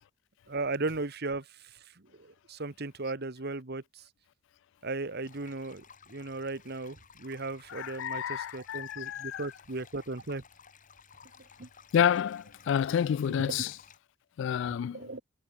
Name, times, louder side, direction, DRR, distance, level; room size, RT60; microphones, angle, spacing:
voice 1, 0.5-4.0 4.8-10.4 11.6-11.7 13.3-13.5 14.9-15.2, right 3 dB, 55° right, 1.5 m, -36 dB
sound 1, 5.2-14.0, left 6 dB, 45° left, 3.1 m, -57 dB
voice 2, 7.7-9.5 11.9-13.7 14.4-15.0, left 8 dB, 65° left, 0.3 m, -29 dB
head